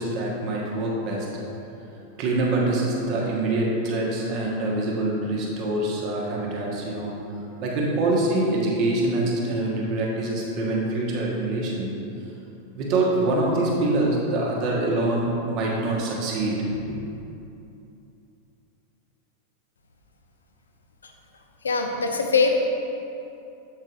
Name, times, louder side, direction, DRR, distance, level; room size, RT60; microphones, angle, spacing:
voice 1, 0.0-1.4 2.2-7.2 7.6-12.0 12.7-17.0, right 2 dB, 40° right, -3 dB, 1.4 m, -25 dB
voice 2, 21.6-22.5, left 4 dB, 70° left, 4 dB, 0.6 m, -22 dB
7.7 x 7.1 x 2.6 m, 2.8 s
figure-of-eight pair, 90°, 0 cm